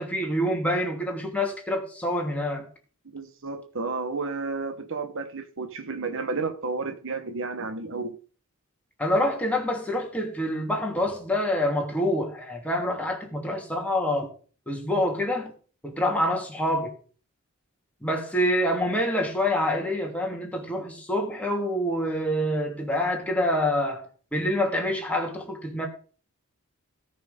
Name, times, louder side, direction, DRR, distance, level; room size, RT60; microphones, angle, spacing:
voice 1, 0.0-2.7 9.0-14.3 14.7-15.5 15.8-16.9 18.0-25.9, left 1 dB, 5° left, 2.8 m, -26 dB
voice 2, 3.1-8.2, right 4 dB, 60° right, 1.2 m, -32 dB
17.0 x 6.2 x 5.1 m
head